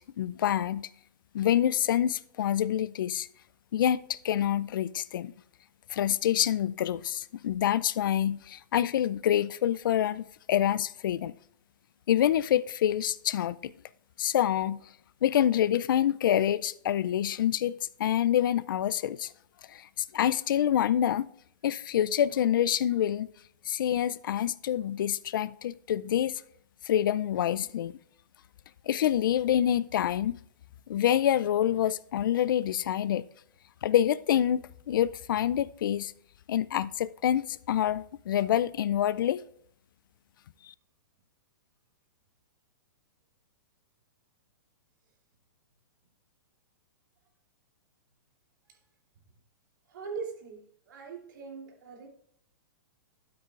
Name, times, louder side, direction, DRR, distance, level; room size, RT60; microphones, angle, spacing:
voice 1, 0.2-0.9 1.3-3.3 3.7-5.3 5.9-11.3 12.1-13.7 14.2-14.8 15.2-19.3 19.7-21.3 21.6-23.3 23.7-26.4 26.9-27.9 28.9-30.3 30.9-33.2 33.8-36.1 36.5-39.4, left 10 dB, 70° left, 0.4 m, -27 dB
voice 2, 49.9-52.1, right 5 dB, 70° right, 3.1 m, -41 dB
12.5 x 8.2 x 2.5 m
hypercardioid pair, 145°, 11 cm